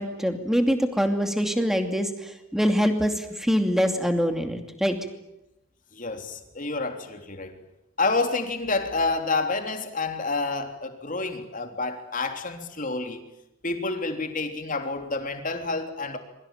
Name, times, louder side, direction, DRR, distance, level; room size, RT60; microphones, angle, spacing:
voice 1, 0.0-5.0, equal, ahead, 6 dB, 2.6 m, -24 dB
voice 2, 5.9-7.6 8.0-13.2 13.6-16.2, left 3 dB, 40° left, 5 dB, 3.3 m, -29 dB
27.0 x 23.5 x 9.1 m, 0.91 s
head